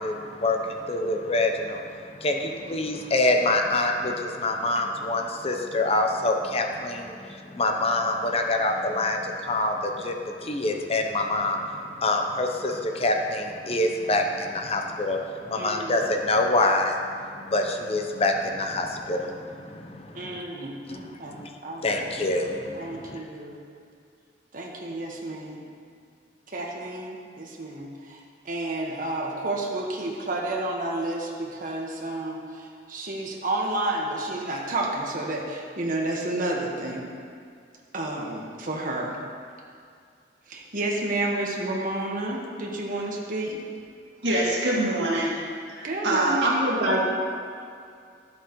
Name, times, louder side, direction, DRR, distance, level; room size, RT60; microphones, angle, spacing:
voice 1, 0.0-1.8 2.2-17.0 17.5-20.4 20.9-21.0 21.3-21.5 21.8-23.2, left 2 dB, 35° left, 3 dB, 0.7 m, -26 dB
voice 2, 15.5-16.0 20.1-22.0 22.7-23.6 24.5-25.7 26.5-28.2 28.4-37.0 37.9-39.2 40.5-43.6 45.8-46.9, right 2 dB, 50° right, -1 dB, 1.4 m, -31 dB
voice 3, 44.2-47.1, right 1 dB, 85° right, -4 dB, 2.0 m, -24 dB
12.5 x 8.0 x 3.1 m, 2.3 s
head